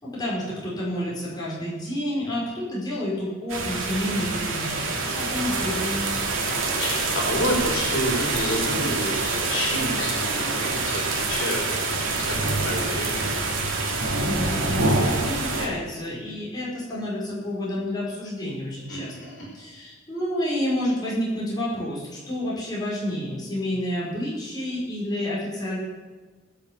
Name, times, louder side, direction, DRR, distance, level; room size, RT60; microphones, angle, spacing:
voice 1, 0.0-6.1 14.2-25.8, left 1 dB, 20° left, -7 dB, 5.4 m, -29 dB
sound 1, 3.5-15.7, right 3 dB, 85° right, 2.5 m, -26 dB
voice 2, 6.8-11.8 12.2-13.4 18.9-19.5, equal, 75° left, -2 dB, 3.7 m, -29 dB
20.0 x 6.9 x 7.4 m, 1.3 s
head